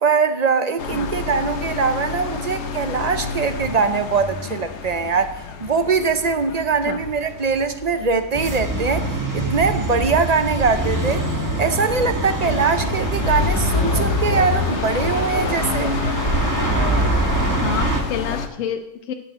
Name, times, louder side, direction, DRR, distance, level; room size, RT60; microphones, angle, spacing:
voice 1, 0.0-11.2 11.6-16.0, right 5 dB, 45° right, 0.6 m, -22 dB
sound 1, 0.8-18.5, left 5 dB, 65° left, 1.1 m, -29 dB
sound 2, 8.3-18.0, right 2 dB, 15° right, 1.4 m, -24 dB
voice 2, 17.6-19.1, left 8 dB, 90° left, 1.0 m, -28 dB
12.5 x 4.7 x 7.8 m
omnidirectional pair, 1.3 m